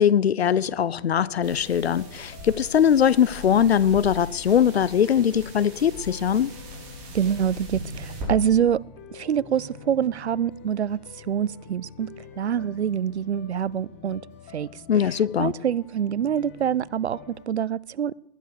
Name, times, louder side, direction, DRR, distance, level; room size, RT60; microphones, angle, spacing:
voice 1, 0.0-6.5 14.9-15.5, left 8 dB, 75° left, 0.8 m, -21 dB
sound 1, 0.5-17.5, left 8 dB, 15° left, 0.6 m, -47 dB
sound 2, 1.4-8.3, equal, 20° right, 6.2 m, -40 dB
voice 2, 7.1-8.8 9.1-12.1 12.4-14.2 14.5-14.7 15.4-18.1, right 9 dB, 90° right, 0.6 m, -25 dB
20.0 x 10.5 x 6.6 m
hypercardioid pair, 160°, 32 cm